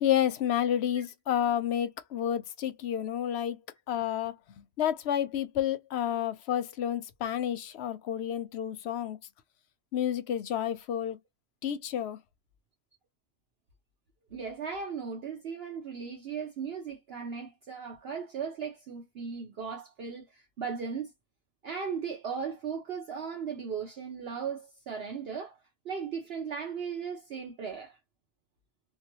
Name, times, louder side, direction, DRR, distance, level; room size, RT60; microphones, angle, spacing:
voice 1, 0.0-3.6 3.9-9.2 9.9-11.2 11.6-12.2, left 10 dB, 65° left, 0.8 m, -30 dB
voice 2, 14.3-21.1 21.6-25.6 25.8-28.0, right 6 dB, 60° right, 0.9 m, -37 dB
2.8 x 2.2 x 2.8 m
omnidirectional pair, 1.3 m